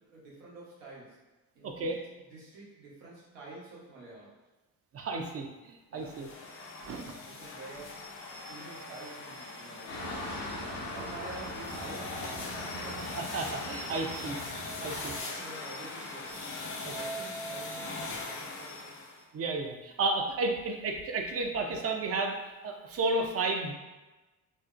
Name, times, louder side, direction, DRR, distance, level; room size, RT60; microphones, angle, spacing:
voice 1, 0.1-1.2 1.5-4.3 5.9-6.2 6.8-10.1 10.6-13.2 14.1-14.4 14.8-19.0, right 2 dB, 85° right, -6 dB, 0.9 m, -49 dB
voice 2, 1.6-2.0 4.9-6.3 6.9-7.1 13.2-14.4 14.8-15.1 16.8-16.9 19.3-22.4 22.6-23.7, right 3 dB, 35° right, 3 dB, 0.4 m, -32 dB
sound 1, 6.0-19.2, left 2 dB, 30° left, 0.5 m, -41 dB
sound 2, 9.9-15.2, left 1 dB, 80° left, 0.7 m, -40 dB
2.6 x 2.0 x 2.4 m, 1.1 s
hypercardioid pair, 55°, 45 cm